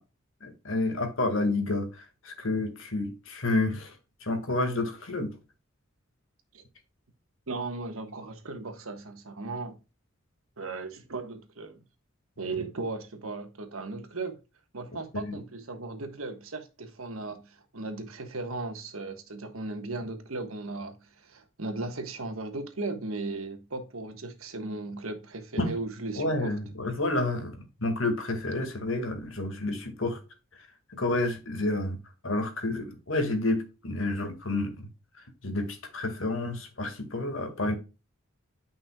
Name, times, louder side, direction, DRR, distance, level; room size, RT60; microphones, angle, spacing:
voice 1, 0.4-1.9 2.2-3.9 4.2-5.3 15.2-15.4 25.6-25.7 26.2-30.2 31.0-32.0 32.2-34.9 35.4-37.7, left 2 dB, 70° left, 1.9 m, -29 dB
voice 2, 7.5-9.8 10.6-11.8 12.4-14.4 14.7-26.5, right 3 dB, 85° right, 1.3 m, -37 dB
9.2 x 5.5 x 2.3 m
head